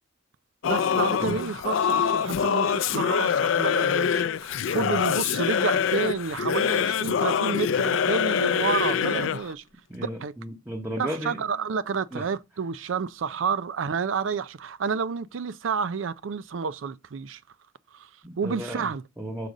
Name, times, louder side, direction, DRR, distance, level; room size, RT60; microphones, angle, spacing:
Singing / Musical instrument, 0.6-9.5, left 7 dB, 85° left, 0.4 m, -24 dB
voice 1, 0.6-9.6 10.0-10.3 11.0-17.4 17.9-18.1 18.4-19.0, right 5 dB, 90° right, 0.5 m, -30 dB
voice 2, 9.9-11.4 12.1-12.3 18.2-18.9 19.2-19.5, equal, 10° right, 0.9 m, -34 dB
6.8 x 3.9 x 4.9 m
head